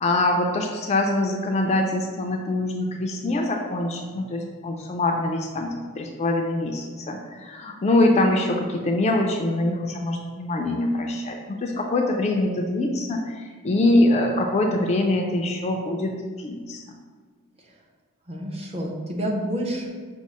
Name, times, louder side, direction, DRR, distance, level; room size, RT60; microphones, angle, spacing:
voice 1, 0.0-16.8, left 2 dB, 30° left, 2 dB, 0.3 m, -24 dB
voice 2, 18.3-19.9, equal, 30° right, -2 dB, 0.6 m, -28 dB
6.0 x 2.0 x 4.1 m, 1.5 s
head